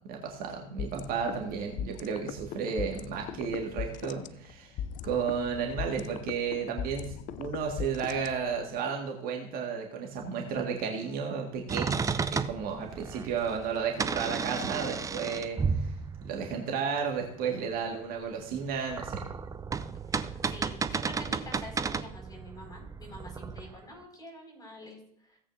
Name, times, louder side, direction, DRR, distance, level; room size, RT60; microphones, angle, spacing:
voice 1, 0.1-4.7 5.0-12.1 12.5-15.9 16.2-19.2, right 6 dB, 45° right, 2 dB, 1.8 m, -33 dB
sound 1, 0.8-8.8, left 8 dB, 40° left, 0.5 m, -39 dB
sound 2, 11.7-16.6 18.6-23.7, right 5 dB, 15° right, 0.5 m, -33 dB
voice 2, 20.1-25.4, left 1 dB, 20° left, 1 dB, 5.3 m, -47 dB
16.5 x 8.5 x 2.7 m, 0.67 s
figure-of-eight pair, 70°, 21 cm